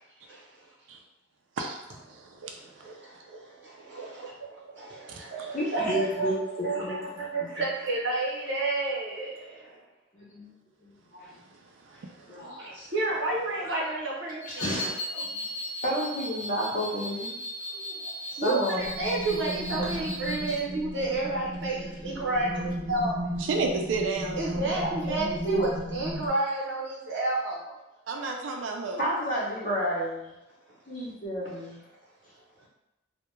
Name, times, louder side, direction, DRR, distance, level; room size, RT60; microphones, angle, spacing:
voice 1, 1.6-2.2 5.1-5.2 23.4-24.8 26.1-26.2 28.1-29.0, right 3 dB, 85° right, 2 dB, 0.4 m, -31 dB
voice 2, 2.4-6.3 6.6-9.8 11.2-11.3 11.9-12.0 12.3-14.6 15.1-15.4 18.4-23.2 24.3-27.7, right 2 dB, 65° right, -4 dB, 0.7 m, -31 dB
voice 3, 5.5-7.5 10.1-10.5 10.8-11.4 12.3-12.9 13.6-13.7 14.5-14.9 15.8-17.4 17.7-18.0 18.3-18.9 19.9-20.0 24.6-24.7 25.1-25.7 29.0-30.4 30.9-31.8, equal, 45° left, -5 dB, 0.7 m, -31 dB
sound 1, 14.4-20.6, equal, 90° left, 0.7 m, -37 dB
sound 2, 18.8-26.3, equal, 10° right, 0.4 m, -35 dB
2.2 x 2.1 x 3.0 m, 0.94 s
head